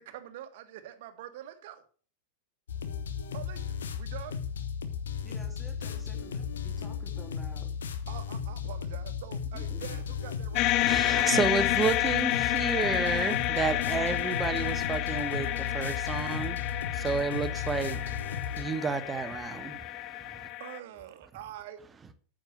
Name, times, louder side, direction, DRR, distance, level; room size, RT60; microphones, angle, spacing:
voice 1, 0.0-1.8 3.3-4.4 8.1-10.8 20.6-21.8, right 12 dB, 50° right, 1.4 m, -45 dB
sound 1, 2.7-18.7, left 7 dB, 65° left, 1.1 m, -35 dB
voice 2, 5.2-7.7 9.5-10.0, equal, ahead, 3.1 m, -50 dB
sound 2, 10.6-20.8, left 16 dB, 40° left, 0.5 m, -30 dB
voice 3, 10.9-20.5, right 5 dB, 15° right, 1.2 m, -32 dB
9.4 x 7.6 x 6.5 m
figure-of-eight pair, 90°, 0 cm